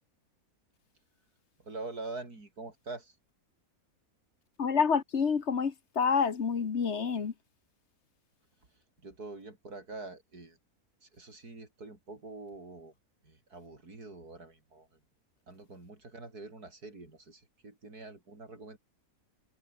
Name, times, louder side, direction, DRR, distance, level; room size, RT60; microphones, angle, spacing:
voice 1, 1.6-3.2 9.0-10.6 11.0-12.9 13.2-14.9 15.5-18.8, right 3 dB, 90° right, 5.4 m, -45 dB
voice 2, 4.6-7.3, left 6 dB, 50° left, 1.6 m, -28 dB
omnidirectional pair, 1.6 m